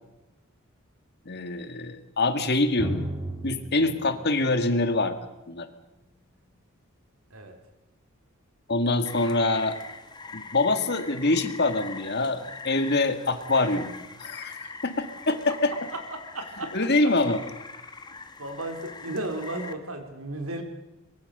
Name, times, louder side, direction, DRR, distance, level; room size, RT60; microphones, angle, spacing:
voice 1, 1.3-3.1 3.4-5.2 5.5-5.7 8.7-9.8 10.3-13.9 14.2-15.7 16.6-17.4, left 2 dB, 50° left, 9 dB, 2.0 m, -25 dB
Drum, 2.8-6.3, right 1 dB, 10° right, 3.3 m, -36 dB
Rain, 9.1-19.7, left 4 dB, 20° left, 1.4 m, -42 dB
voice 2, 15.9-16.7 18.4-20.6, right 1 dB, 90° right, 5 dB, 4.1 m, -34 dB
25.0 x 22.0 x 6.8 m, 0.97 s
head